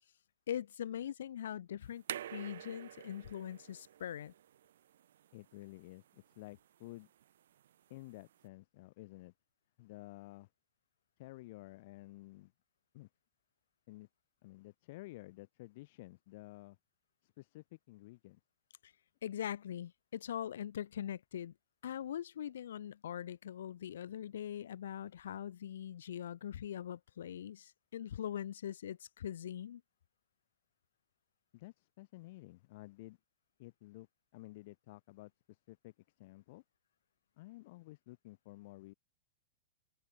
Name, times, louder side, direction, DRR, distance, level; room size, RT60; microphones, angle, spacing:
voice 1, 0.5-2.0 2.3-4.3 18.8-18.9 19.2-21.5 21.8-29.8, left 10 dB, 80° left, 0.8 m, -42 dB
sound 1, 1.8-8.5, right 11 dB, 75° right, 0.9 m, -50 dB
voice 2, 5.3-7.1 7.9-9.3 9.8-10.5 11.2-12.5 12.9-13.1 13.9-14.1 14.4-16.8 17.2-18.4 31.5-33.2 33.6-34.1 34.3-36.6 37.4-38.9, left 20 dB, 55° left, 4.9 m, -52 dB
hypercardioid pair, 140°, 0 cm